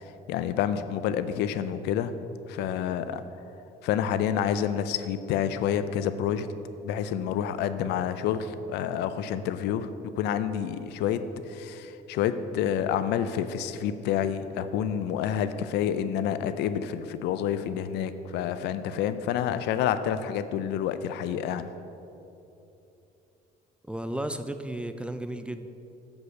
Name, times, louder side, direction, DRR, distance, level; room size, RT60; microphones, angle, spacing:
voice 1, 0.0-2.1 2.5-3.2 3.8-6.5 6.8-21.7, left 9 dB, 85° left, 12 dB, 0.5 m, -28 dB
voice 2, 23.8-25.7, right 1 dB, 5° right, 9 dB, 0.3 m, -34 dB
8.0 x 5.3 x 5.8 m, 2.9 s
cardioid pair, 110°, 17 cm